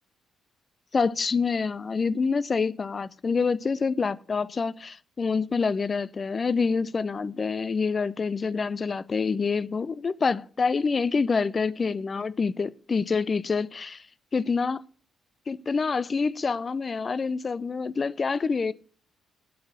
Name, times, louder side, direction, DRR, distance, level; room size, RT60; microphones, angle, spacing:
voice 1, 0.9-14.1 14.3-14.8 15.5-18.7, left 5 dB, 35° left, 0.6 m, -27 dB
8.7 x 8.6 x 8.4 m
figure-of-eight pair, 40°, 0 cm